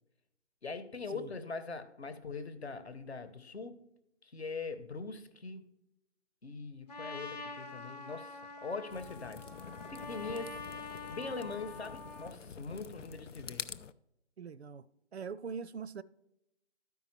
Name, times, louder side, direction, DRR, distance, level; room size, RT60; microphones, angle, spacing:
voice 1, 0.6-3.8 4.2-5.7 6.4-9.5 9.9-10.6 11.1-13.7, left 4 dB, 60° left, 1.1 m, -42 dB
Trumpet, 6.9-12.4, left 3 dB, 35° left, 0.9 m, -46 dB
sound 1, 8.9-13.9, left 6 dB, 75° left, 0.6 m, -47 dB
voice 2, 14.4-14.9 15.1-16.0, right 6 dB, 60° right, 0.5 m, -42 dB
13.0 x 5.3 x 3.2 m
figure-of-eight pair, 170°, 37 cm